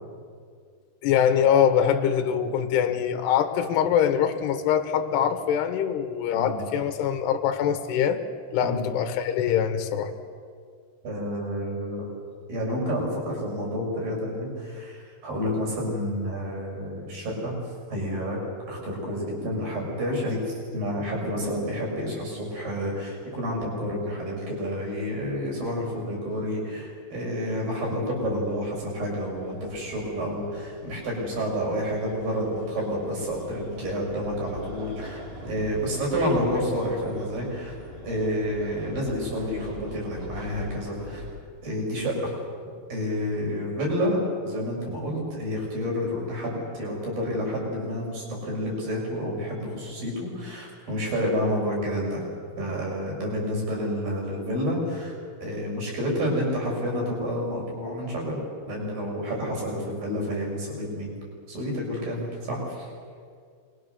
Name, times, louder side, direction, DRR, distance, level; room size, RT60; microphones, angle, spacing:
voice 1, 1.0-8.2 8.5-10.1, left 8 dB, 70° left, 8 dB, 3.2 m, -23 dB
voice 2, 6.3-6.7 8.6-8.8 11.0-12.0 12.5-17.5 17.9-18.4 18.7-37.7 38.0-41.2 41.6-42.3 42.9-44.2 44.4-52.2 52.6-55.1 55.4-58.4 58.7-61.1 61.5-62.9, equal, 45° right, -2 dB, 8.2 m, -29 dB
sound 1, 28.2-41.4, equal, 30° right, 3.4 m, -43 dB
28.0 x 22.0 x 6.9 m, 2.1 s
omnidirectional pair, 5.5 m